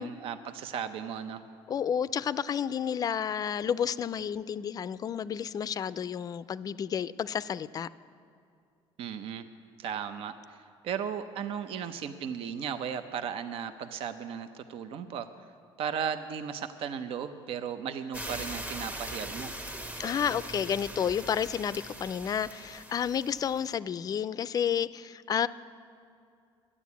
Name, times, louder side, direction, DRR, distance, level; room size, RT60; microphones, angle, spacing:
voice 1, 0.0-1.4 9.0-9.5 9.8-10.6 10.8-15.3 15.8-19.5, right 7 dB, 70° right, 10 dB, 0.6 m, -36 dB
voice 2, 1.7-7.9 20.0-25.5, left 8 dB, 40° left, 16 dB, 0.4 m, -31 dB
sound 1, 18.1-23.7, right 1 dB, 15° right, 0.9 m, -41 dB
12.5 x 9.9 x 8.3 m, 2.4 s
cardioid pair, 110°, 10 cm